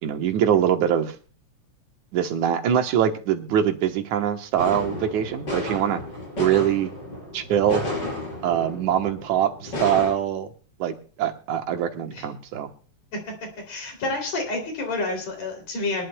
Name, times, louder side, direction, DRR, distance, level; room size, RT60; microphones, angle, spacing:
voice 1, 0.0-1.1 2.1-6.0 6.4-6.9 7.3-7.8 8.4-10.5 10.8-12.7, right 9 dB, 90° right, 5 dB, 2.7 m, -23 dB
sound 1, 4.6-10.1, left 1 dB, 35° left, 6.1 m, -32 dB
voice 2, 13.7-16.1, left 2 dB, 65° left, 2 dB, 4.2 m, -29 dB
24.0 x 11.5 x 2.3 m, 0.38 s
omnidirectional pair, 3.3 m